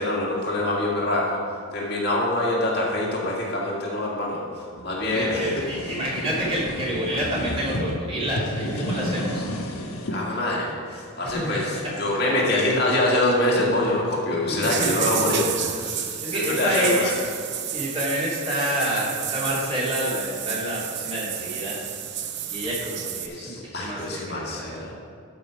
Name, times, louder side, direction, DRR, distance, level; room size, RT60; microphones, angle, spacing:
voice 1, 0.0-1.4 1.7-4.4 4.8-5.5 10.1-10.7 11.2-17.1 23.4-24.9, left 1 dB, 50° left, -4 dB, 1.8 m, -25 dB
voice 2, 0.5-1.2 5.1-9.4 11.2-11.9 13.8-14.0 14.3-15.1 16.2-17.2 17.7-21.8 22.5-23.5 23.8-24.9, equal, 25° right, -6 dB, 2.5 m, -28 dB
sound 1, 4.8-7.8 8.3-10.2, equal, 85° left, 1.2 m, -31 dB
sound 2, 14.6-23.3, right 10 dB, 50° right, 0.7 m, -31 dB
12.5 x 5.5 x 4.9 m, 2.3 s
head